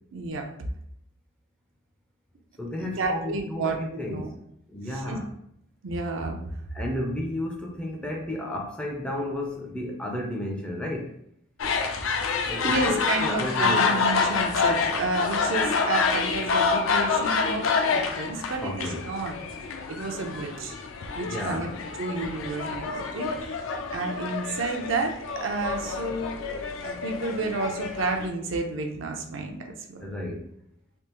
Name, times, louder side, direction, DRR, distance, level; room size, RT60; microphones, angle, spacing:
voice 1, 0.1-0.5 2.8-4.3 4.9-5.2 5.8-6.4 12.3-19.3 19.9-20.8 21.2-21.7 22.0-23.6 23.9-26.4 26.8-29.6 29.9-30.1, right 3 dB, 60° right, 3 dB, 0.5 m, -31 dB
voice 2, 2.6-4.3 4.7-5.3 6.7-11.2 12.5-13.9 18.6-19.0 21.2-21.7 30.0-30.5, left 1 dB, 5° left, 0 dB, 0.4 m, -32 dB
sound 1, 11.6-28.3, left 5 dB, 70° left, 0.4 m, -28 dB
3.4 x 2.7 x 3.0 m, 0.74 s
head